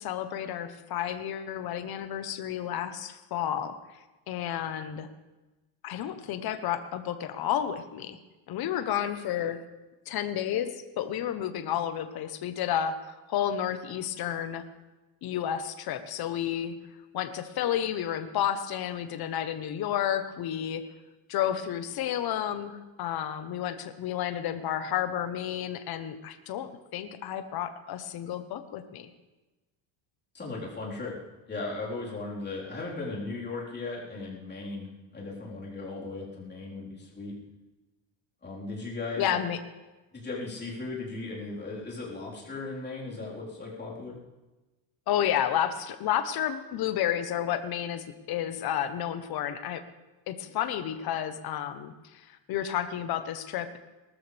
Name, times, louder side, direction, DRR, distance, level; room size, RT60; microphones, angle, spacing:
voice 1, 0.0-3.8 4.3-5.1 5.8-8.2 8.5-9.6 10.1-14.6 15.2-16.7 17.1-20.8 21.3-29.1 39.2-39.6 45.1-49.8 50.3-53.8, left 10 dB, 50° left, 9 dB, 1.1 m, -31 dB
voice 2, 30.3-31.2 31.5-37.4 38.4-39.4 40.1-44.2, left 3 dB, 20° left, -5 dB, 4.3 m, -37 dB
19.5 x 13.5 x 3.5 m, 1.1 s
cardioid pair, 135°, 48 cm